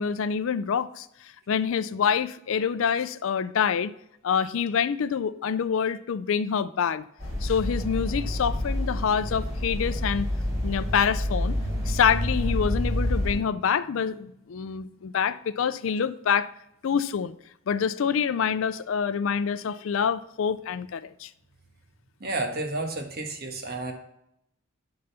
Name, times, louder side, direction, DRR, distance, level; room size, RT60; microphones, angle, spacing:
voice 1, 0.0-3.9 4.2-10.3 10.6-11.6 11.9-16.5 16.8-17.3 17.7-21.3, left 7 dB, 70° left, 0.4 m, -26 dB
sound 1, 7.2-13.4, left 1 dB, 15° right, 3.6 m, -28 dB
voice 2, 22.2-23.9, right 2 dB, 45° right, 1.3 m, -31 dB
10.0 x 4.0 x 5.5 m
head